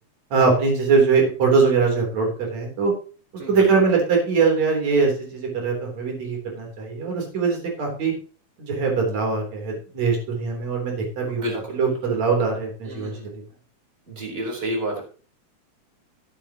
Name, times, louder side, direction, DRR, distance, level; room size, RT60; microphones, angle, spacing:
voice 1, 0.3-2.9 3.5-8.1 8.6-11.4 11.7-13.4, right 4 dB, 65° right, 1 dB, 4.8 m, -22 dB
voice 2, 3.4-3.7 11.3-12.0 12.8-13.3 14.1-15.0, right 1 dB, 20° right, 0 dB, 4.0 m, -30 dB
13.5 x 10.5 x 3.0 m, 0.39 s
omnidirectional pair, 3.4 m